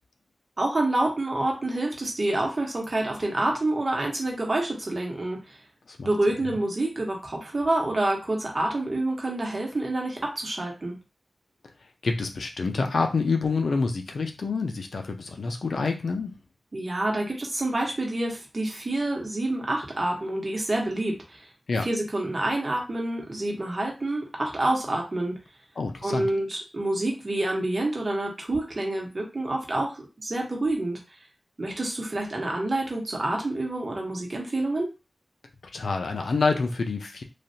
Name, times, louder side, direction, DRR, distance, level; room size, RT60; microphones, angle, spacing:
voice 1, 0.6-5.6 6.0-10.9 16.7-21.4 21.8-25.3 26.0-31.0 31.6-34.9, right 2 dB, 40° right, 0 dB, 1.1 m, -27 dB
voice 2, 12.0-16.3 21.7-21.9 25.8-26.3 35.7-37.2, left 4 dB, 85° left, 4 dB, 0.5 m, -27 dB
3.2 x 2.4 x 2.7 m, 0.28 s
wide cardioid pair, 80°, 0 cm